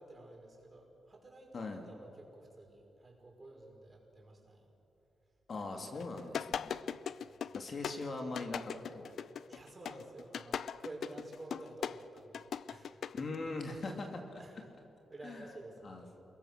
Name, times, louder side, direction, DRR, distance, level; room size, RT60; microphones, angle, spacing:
voice 1, 0.0-4.7 7.1-7.7 9.5-12.9 14.4-14.7 15.1-16.2, right 2 dB, 30° right, -1 dB, 5.6 m, -52 dB
voice 2, 5.5-6.8 7.5-9.1 13.1-14.6 15.2-15.5 15.8-16.0, left 3 dB, 50° left, 3 dB, 2.5 m, -41 dB
sound 1, 6.0-13.4, left 8 dB, 70° left, 0.6 m, -39 dB
28.5 x 22.0 x 6.7 m, 2.9 s
cardioid pair, 105°, 0 cm